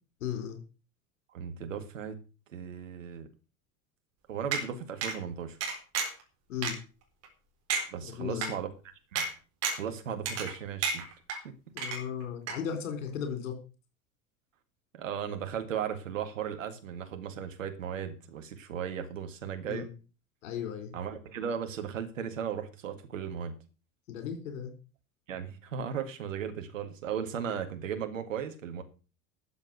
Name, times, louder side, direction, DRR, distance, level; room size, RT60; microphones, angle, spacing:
voice 1, 0.2-0.6 6.5-6.7 8.0-8.5 11.7-13.6 19.7-19.9 20.4-20.9 24.1-24.7, left 8 dB, 60° left, 6 dB, 4.0 m, -36 dB
voice 2, 1.3-2.2 2.5-3.3 4.3-5.6 7.9-8.7 9.1-9.2 9.7-11.0 11.4-11.5 14.9-19.9 20.9-23.5 25.3-28.8, right 8 dB, 65° right, 7 dB, 2.0 m, -36 dB
sound 1, 4.5-4.6 5.0-5.2 5.6-6.2 6.6-6.7 7.2-7.3 7.7-7.8 8.4-8.5 9.2-9.3 9.6-9.9 10.3-10.6 10.8-11.4 11.8-12.2 12.5-12.6, right 5 dB, 40° right, 4.1 m, -31 dB
13.0 x 7.2 x 6.5 m, 0.34 s
figure-of-eight pair, 75°, 41 cm